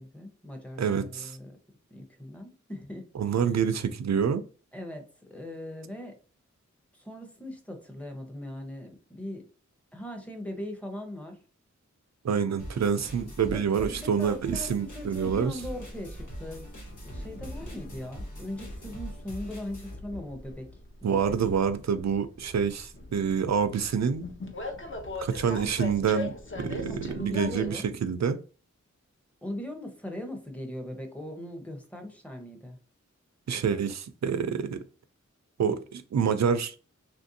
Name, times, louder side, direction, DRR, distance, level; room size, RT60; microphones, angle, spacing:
voice 1, 0.0-1.6 1.9-3.1 3.4-3.5 4.7-6.2 6.9-9.4 9.9-11.4 13.5-16.7 17.0-20.7 21.0-21.4 26.8-27.9 29.4-32.8, left 1 dB, 5° left, 0.7 m, -40 dB
voice 2, 0.8-1.4 3.1-4.4 12.2-15.6 21.0-24.3 25.2-28.4 33.5-34.8 35.6-36.7, right 7 dB, 65° right, 0.4 m, -27 dB
sound 1, 12.6-20.0, equal, 85° left, 1.1 m, -42 dB
Train, 13.9-27.7, left 2 dB, 40° left, 0.7 m, -42 dB
3.1 x 2.6 x 2.6 m
wide cardioid pair, 65°, 30 cm